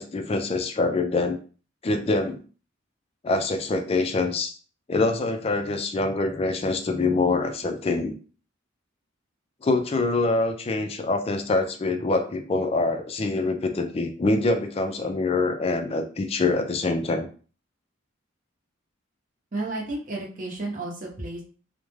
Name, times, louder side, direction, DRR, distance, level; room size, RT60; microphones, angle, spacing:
voice 1, 0.0-1.4 1.8-2.4 3.2-4.5 4.9-8.2 9.6-17.3, left 3 dB, 30° left, 5 dB, 0.3 m, -25 dB
voice 2, 19.5-21.4, right 2 dB, 40° right, -2 dB, 0.8 m, -32 dB
2.3 x 2.1 x 3.1 m, 0.38 s
head